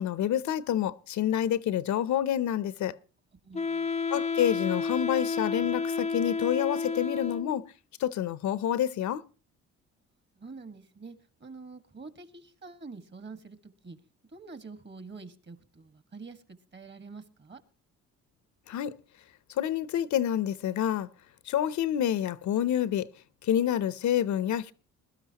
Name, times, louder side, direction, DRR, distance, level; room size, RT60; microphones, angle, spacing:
voice 1, 0.0-2.9 4.1-7.6 8.0-9.2 18.7-18.9 19.6-21.1 21.5-23.1 23.4-24.7, left 10 dB, 70° left, 0.7 m, -28 dB
voice 2, 3.4-3.9 10.4-14.0 14.3-16.4 16.7-17.6, right 4 dB, 35° right, 1.8 m, -46 dB
Wind instrument woodwind instrument, 3.5-7.7, left 4 dB, 20° left, 0.6 m, -31 dB
21.0 x 12.5 x 2.9 m
cardioid pair, 90°, 30 cm